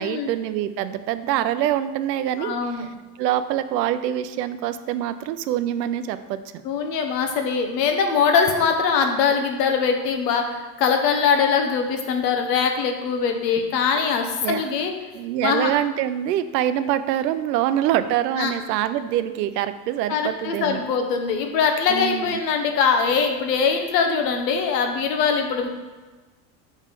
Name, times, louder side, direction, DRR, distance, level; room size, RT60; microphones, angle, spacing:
voice 1, 0.0-2.9 3.2-6.4 14.4-14.8 15.1-20.9 21.9-22.4, right 11 dB, 85° right, 12 dB, 0.6 m, -25 dB
voice 2, 2.4-2.9 6.6-14.9 15.4-15.7 18.4-18.5 20.1-25.7, left 6 dB, 80° left, 5 dB, 1.1 m, -22 dB
5.3 x 3.7 x 5.1 m, 1.3 s
supercardioid pair, 95°, 48 cm